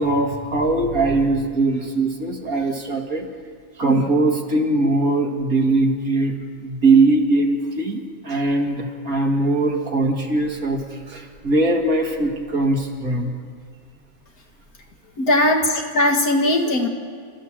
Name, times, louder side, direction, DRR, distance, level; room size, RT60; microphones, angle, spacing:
voice 1, 0.0-3.3 3.8-13.3, right 2 dB, 70° right, 1 dB, 2.6 m, -21 dB
voice 2, 15.2-16.9, left 1 dB, 75° left, 3 dB, 2.5 m, -19 dB
29.0 x 14.5 x 7.5 m, 2.1 s
omnidirectional pair, 1.5 m